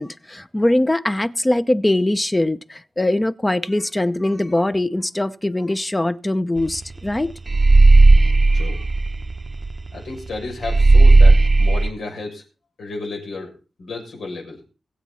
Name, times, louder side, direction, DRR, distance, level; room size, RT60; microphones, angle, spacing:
voice 1, 0.0-7.3, left 1 dB, 15° left, 0.7 m, -21 dB
sound 1, 6.6-6.8 7.1-9.9 10.2-10.3 10.6-11.9, right 2 dB, 35° right, 0.7 m, -13 dB
voice 2, 9.9-12.4 12.8-13.5 13.8-14.6, left 3 dB, 90° left, 6.8 m, -32 dB
23.0 x 8.2 x 4.3 m
wide cardioid pair, 100°, 0 cm